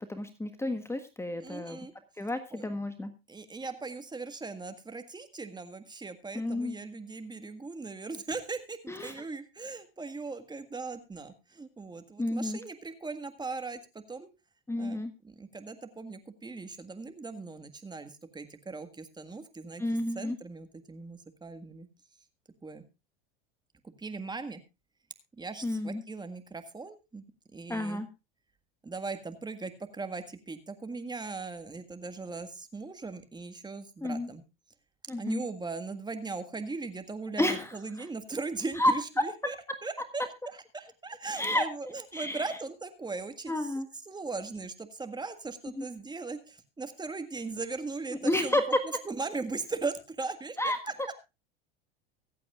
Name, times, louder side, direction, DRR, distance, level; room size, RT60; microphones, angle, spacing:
voice 1, 0.1-1.8 2.2-3.1 6.3-6.8 8.9-9.2 12.2-12.6 14.7-15.1 19.8-20.4 25.6-26.0 27.7-28.1 34.0-34.3 35.1-35.4 37.4-37.7 38.8-38.9 41.3-41.6 42.1-42.5 43.5-43.9 45.8-45.9 48.2-48.6 50.6-50.8, left 1 dB, 10° left, 8 dB, 1.5 m, -30 dB
voice 2, 1.4-1.9 2.5-2.6 3.3-14.3 14.8-19.8 20.2-21.9 22.6-22.8 24.0-24.6 25.4-27.3 27.5-28.0 28.8-34.4 35.2-39.6 39.8-43.7 44.1-48.6 49.1-50.9, right 3 dB, 15° right, 9 dB, 1.7 m, -39 dB
24.5 x 8.4 x 2.4 m, 0.27 s
hypercardioid pair, 90°, 30 cm